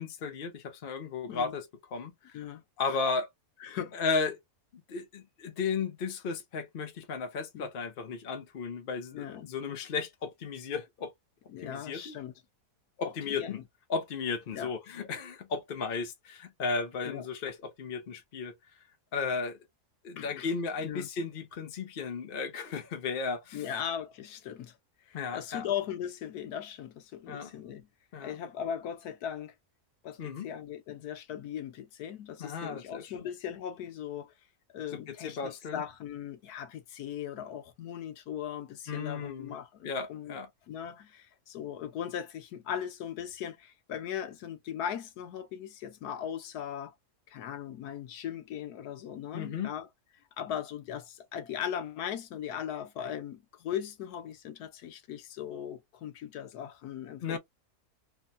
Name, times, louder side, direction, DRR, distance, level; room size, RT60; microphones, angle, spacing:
voice 1, 0.0-1.7 1.9-2.3 2.8-3.3 3.9-4.4 4.7-11.1 11.6-12.2 13.0-13.6 13.9-18.5 19.1-19.6 20.0-23.6 25.1-25.7 27.3-27.5 28.1-28.4 30.2-30.5 32.4-33.1 34.9-35.8 38.9-39.6 39.8-40.5 49.3-49.7 57.2-57.4, left 5 dB, 50° left, 0.7 m, -34 dB
voice 2, 2.3-3.0 3.6-4.0 7.5-7.7 9.1-9.5 11.5-12.3 13.0-13.5 14.5-14.7 17.0-17.3 20.2-20.5 20.8-21.1 23.5-24.8 25.1-27.9 28.2-29.5 30.0-34.3 34.7-40.4 40.7-46.9 47.3-49.9 50.4-57.4, left 9 dB, 85° left, 1.2 m, -38 dB
3.4 x 2.1 x 2.4 m
omnidirectional pair, 1.6 m